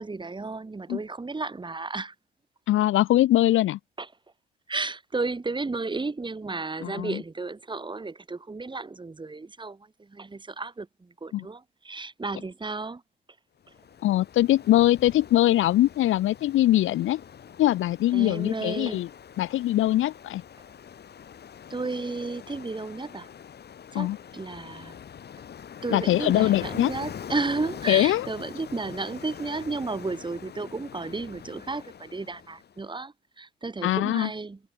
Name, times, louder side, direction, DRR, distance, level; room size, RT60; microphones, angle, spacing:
voice 1, 0.0-2.1 4.0-4.1 4.7-13.0 18.1-19.0 21.7-23.3 23.9-25.0 25.8-34.6, right 3 dB, 25° right, 6.1 m, -33 dB
voice 2, 2.7-3.8 6.8-7.2 11.3-11.5 14.0-17.2 17.6-19.1 19.4-20.4 23.9-24.2 25.9-26.9 27.9-28.3 33.8-34.3, left 14 dB, 85° left, 5.1 m, -22 dB
Ocean, 13.7-32.8, left 8 dB, 55° left, 6.0 m, -43 dB
cardioid pair, 90°, 20 cm